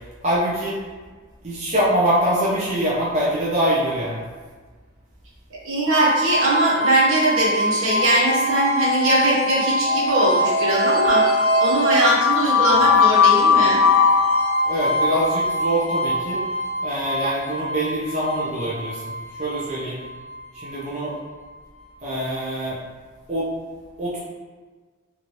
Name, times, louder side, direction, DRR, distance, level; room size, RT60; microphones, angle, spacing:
voice 1, 0.2-0.8 1.4-4.2 14.6-16.4 16.8-19.1 19.4-20.0 20.5-21.1 22.0-22.7 23.3-23.5 24.0-24.2, right 1 dB, 30° right, -8 dB, 0.6 m, -24 dB
voice 2, 5.6-13.8, right 2 dB, 80° right, -6 dB, 0.9 m, -21 dB
sound 1, 5.9-20.8, left 3 dB, 85° left, 0.5 m, -21 dB
2.9 x 2.5 x 3.1 m, 1.4 s
head